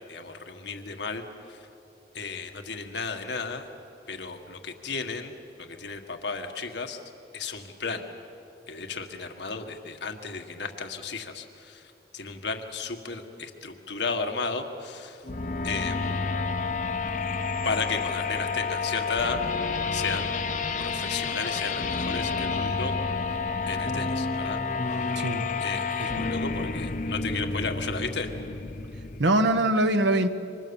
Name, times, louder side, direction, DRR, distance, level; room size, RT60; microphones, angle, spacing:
voice 1, 0.1-1.6 2.1-3.6 4.1-7.0 7.3-8.1 8.7-15.2 15.6-16.1 17.6-19.4 19.9-20.3 20.8-22.9 23.7-24.6 24.9-25.2 25.6-28.3, left 4 dB, 80° left, 5 dB, 1.8 m, -34 dB
sound 1, 15.2-29.2, left 4 dB, 45° left, 0.8 m, -30 dB
voice 2, 25.1-25.5 26.0-26.2 29.2-30.3, right 1 dB, 90° right, 7 dB, 1.4 m, -23 dB
27.5 x 25.0 x 7.2 m, 2.7 s
head